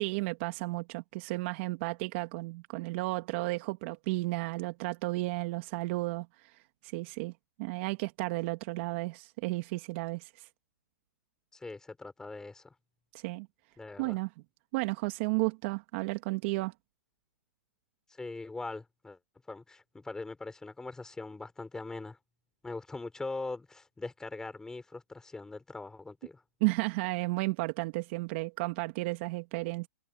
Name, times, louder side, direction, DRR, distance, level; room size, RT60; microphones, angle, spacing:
voice 1, 0.0-7.3 7.6-10.5 13.1-13.5 14.0-14.3 14.7-16.7 26.6-29.9, right 23 dB, 40° right, 2.0 m, -33 dB
voice 2, 11.5-12.7 13.8-14.2 18.2-19.2 19.5-22.2 22.6-26.4, left 3 dB, 5° left, 5.4 m, -41 dB
hypercardioid pair, 140°, 9 cm